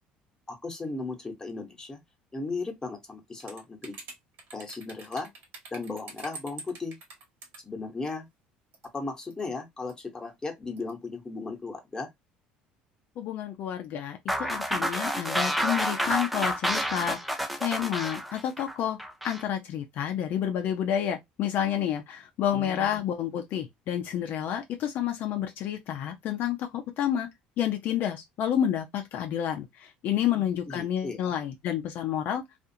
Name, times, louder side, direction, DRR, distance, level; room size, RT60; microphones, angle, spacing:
voice 1, 0.5-2.0 2.3-3.9 4.5-5.3 5.7-7.0 7.6-8.3 8.9-12.1 22.5-22.9 30.3-31.3, left 3 dB, 15° left, 1.0 m, -36 dB
sound 1, 3.4-7.6 8.7-9.0 9.3-9.4 9.9-10.0 10.8-10.9, right 4 dB, 65° right, 1.3 m, -45 dB
voice 2, 13.2-19.0 19.2-27.3 27.6-32.4, left 10 dB, 60° left, 0.5 m, -30 dB
sound 2, 14.3-19.4, equal, ahead, 0.5 m, -29 dB
2.5 x 2.4 x 2.7 m
supercardioid pair, 85°, 4 cm